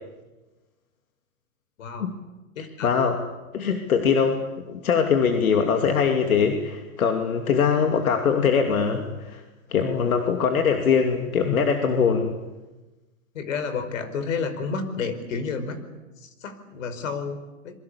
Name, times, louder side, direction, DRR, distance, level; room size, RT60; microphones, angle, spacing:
voice 1, 1.8-2.1 2.6-2.9 13.3-15.8 16.2-17.7, left 5 dB, 65° left, 10 dB, 5.2 m, -31 dB
voice 2, 2.8-3.2 3.5-9.4 9.7-12.4, left 6 dB, 85° left, 4 dB, 2.9 m, -22 dB
27.0 x 23.0 x 8.5 m, 1.1 s
hypercardioid pair, 150°, 41 cm